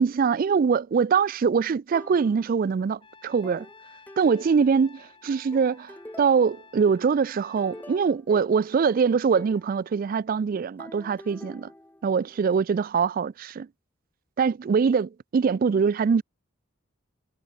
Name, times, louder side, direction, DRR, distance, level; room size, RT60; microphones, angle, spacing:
voice 1, 0.0-3.7 4.2-11.7 12.0-13.7 14.4-16.2, right 6 dB, 45° right, 0.3 m, -23 dB
sound 1, 1.9-2.7 3.4-5.1 5.5-6.7 7.2-9.7 10.8-12.6, left 1 dB, 10° left, 0.6 m, -46 dB
Trumpet, 3.0-8.1, left 4 dB, 25° left, 1.9 m, -53 dB
head